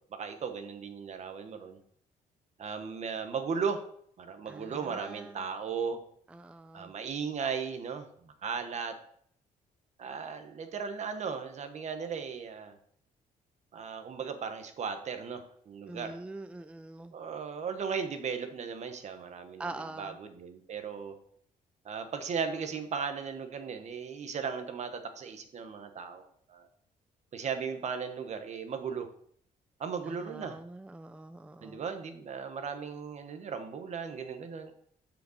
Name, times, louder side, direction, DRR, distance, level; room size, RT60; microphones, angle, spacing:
voice 1, 0.2-1.8 2.6-3.8 4.2-6.0 6.7-8.9 10.0-12.7 13.7-16.2 17.1-21.2 21.8-26.7 27.3-29.1 29.8-30.6 31.6-34.7, right 6 dB, 50° right, 7 dB, 1.2 m, -36 dB
voice 2, 4.5-5.5 6.3-6.9 15.9-17.1 19.6-20.2 30.1-31.8, right 2 dB, 10° right, 10 dB, 0.4 m, -44 dB
6.6 x 5.1 x 6.6 m, 0.65 s
cardioid pair, 100°, 15 cm